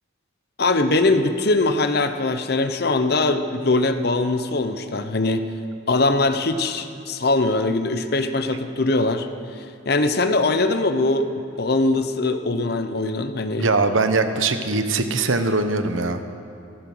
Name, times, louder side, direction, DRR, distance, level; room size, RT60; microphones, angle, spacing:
voice 1, 0.6-5.5 5.9-9.3 9.6-11.3 11.6-13.7, left 2 dB, 55° left, 9 dB, 0.8 m, -21 dB
voice 2, 13.6-16.3, right 3 dB, 85° right, 8 dB, 1.1 m, -21 dB
15.0 x 14.0 x 6.2 m, 2.5 s
head